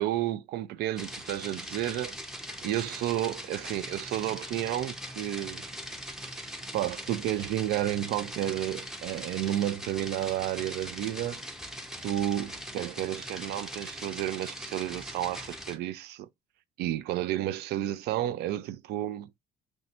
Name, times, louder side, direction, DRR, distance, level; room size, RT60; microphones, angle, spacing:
voice 1, 0.0-2.2 2.6-5.6 6.7-11.4 12.0-16.3 16.8-19.3, right 13 dB, 75° right, 0.4 m, -31 dB
sound 1, 1.0-15.8, equal, ahead, 0.5 m, -41 dB
2.7 x 2.2 x 4.0 m
cardioid pair, 110°, 17 cm